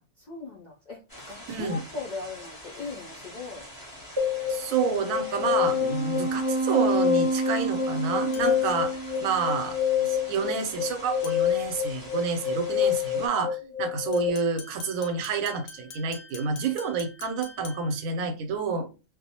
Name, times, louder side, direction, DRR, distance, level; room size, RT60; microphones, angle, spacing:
voice 1, 0.0-3.6 18.2-18.9, left 3 dB, 60° left, 0.4 m, -40 dB
sound 1, 1.1-13.3, equal, 20° left, 0.6 m, -45 dB
voice 2, 1.5-1.8 4.5-18.9, right 5 dB, 90° right, 1.0 m, -29 dB
sound 2, 4.2-14.3, left 5 dB, 30° right, 0.5 m, -27 dB
sound 3, 8.3-8.8 11.2-11.6 14.1-18.1, left 4 dB, 90° left, 1.0 m, -46 dB
2.3 x 2.1 x 2.8 m
omnidirectional pair, 1.4 m